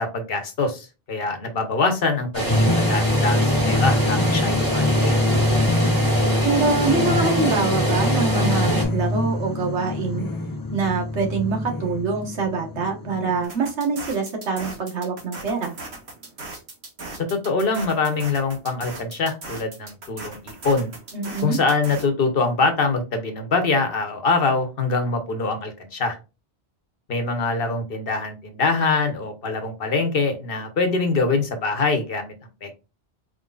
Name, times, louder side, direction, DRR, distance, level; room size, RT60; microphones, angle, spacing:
voice 1, 0.0-5.1 17.2-20.9 21.4-26.2 27.1-32.3 32.6-32.7, left 3 dB, 60° left, 6 dB, 1.1 m, -24 dB
sound 1, 2.3-8.9, right 1 dB, 20° right, 1.9 m, -25 dB
sound 2, 2.5-13.4, left 2 dB, 35° left, 0.3 m, -24 dB
voice 2, 6.4-10.3 10.7-15.7 21.1-21.6, right 4 dB, 90° right, 2 dB, 1.5 m, -25 dB
sound 3, 13.4-22.1, right 2 dB, 70° right, 1.6 m, -38 dB
4.5 x 3.8 x 2.4 m, 0.29 s
omnidirectional pair, 1.1 m